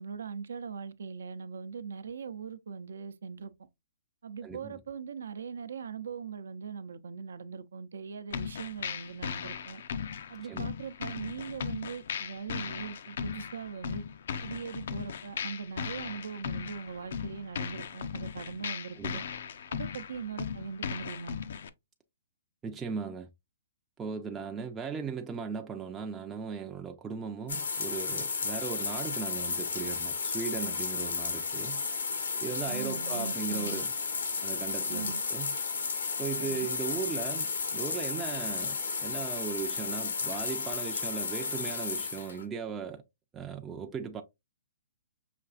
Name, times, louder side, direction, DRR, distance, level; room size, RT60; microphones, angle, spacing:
voice 1, 0.0-3.5 4.2-9.8 10.3-14.0 14.4-19.3 19.7-21.4 32.7-33.8 34.9-35.2 36.4-36.7, right 6 dB, 80° right, 0.5 m, -40 dB
voice 2, 4.4-4.8 10.4-10.7 19.0-19.2 22.6-23.3 24.0-31.8 32.4-33.9 34.4-35.6 36.2-43.0 43.3-44.2, right 6 dB, 15° right, 0.4 m, -37 dB
sound 1, 8.3-21.7, left 7 dB, 65° left, 0.4 m, -38 dB
sound 2, 27.5-42.4, left 5 dB, 85° left, 1.1 m, -33 dB
5.8 x 2.5 x 2.4 m
hypercardioid pair, 150°, 0 cm